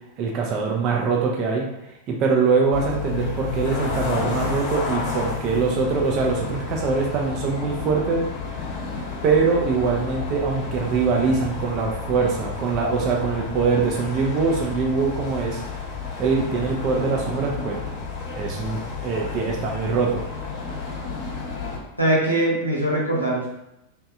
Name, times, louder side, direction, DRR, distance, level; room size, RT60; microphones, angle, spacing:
voice 1, 0.2-1.7 2.1-8.2 9.2-15.6 16.2-17.8 18.4-20.2, right 5 dB, 40° right, 0 dB, 0.4 m, -23 dB
sound 1, 2.7-21.8, left 4 dB, 45° left, 0.8 m, -31 dB
voice 2, 22.0-23.5, right 1 dB, 90° left, -5 dB, 0.8 m, -21 dB
3.1 x 2.6 x 2.3 m, 0.86 s
figure-of-eight pair, 90°, 0 cm